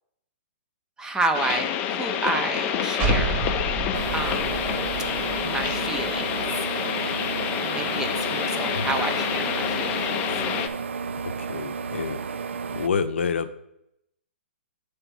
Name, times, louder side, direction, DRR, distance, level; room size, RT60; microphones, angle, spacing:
voice 1, 1.0-3.4 4.1-4.5 5.4-6.4 6.8-7.1 7.6-10.2, right 3 dB, 10° right, 5 dB, 0.7 m, -30 dB
sound 1, 1.3-10.7, left 9 dB, 30° left, 0.5 m, -28 dB
sound 2, 3.0-6.5, right 2 dB, 30° right, 1.3 m, -30 dB
sound 3, 3.9-12.9, right 5 dB, 75° right, 0.4 m, -32 dB
voice 2, 11.2-12.2 12.7-13.5, left 6 dB, 75° left, 9 dB, 0.7 m, -28 dB
6.9 x 3.4 x 6.1 m, 0.79 s
hypercardioid pair, 130°, 7 cm